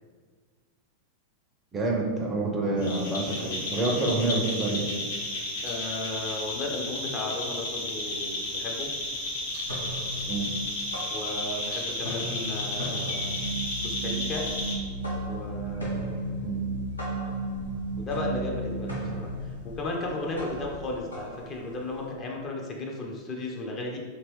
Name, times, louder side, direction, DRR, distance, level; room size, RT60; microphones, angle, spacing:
voice 1, 1.7-5.0 10.3-10.5 16.4-16.6, right 2 dB, 20° right, 0 dB, 0.5 m, -27 dB
sound 1, 2.8-14.7, left 1 dB, 60° left, 1.2 m, -33 dB
voice 2, 5.6-8.9 11.1-13.4 13.8-14.4 15.3-16.0 18.0-24.0, left 2 dB, 30° left, -1 dB, 0.6 m, -35 dB
sound 2, 8.1-8.2 8.6-9.2 9.5-11.7 11.9-22.1, left 1 dB, 80° left, 0.9 m, -39 dB
sound 3, 13.1-19.1, right 3 dB, 80° right, 0.3 m, -33 dB
3.0 x 2.9 x 3.0 m, 1.5 s
figure-of-eight pair, 90°, 0 cm